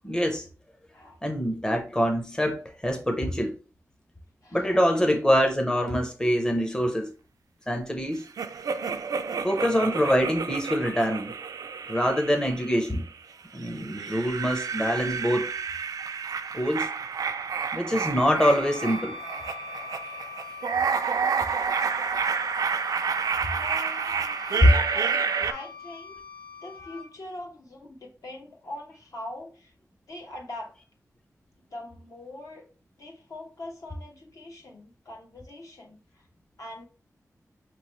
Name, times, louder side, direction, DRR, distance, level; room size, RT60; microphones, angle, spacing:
voice 1, 0.0-0.5 1.2-3.5 4.5-7.1 7.7-8.3 9.4-11.3 11.9-13.0 13.5-15.5 16.5-16.9 17.7-19.2 24.6-24.7, equal, 10° left, 0.6 m, -24 dB
voice 2, 4.4-4.9 21.1-21.2 23.0-23.1 23.4-26.2 26.6-29.7 30.1-30.8 31.7-32.6 33.0-36.3 36.6-36.9, left 1 dB, 65° left, 1.0 m, -42 dB
sound 1, 8.4-13.1 13.6-25.5, right 6 dB, 90° right, 0.4 m, -30 dB
Wind instrument woodwind instrument, 18.4-27.1, left 6 dB, 30° left, 1.0 m, -42 dB
5.2 x 3.0 x 3.0 m
wide cardioid pair, 130°, 6 cm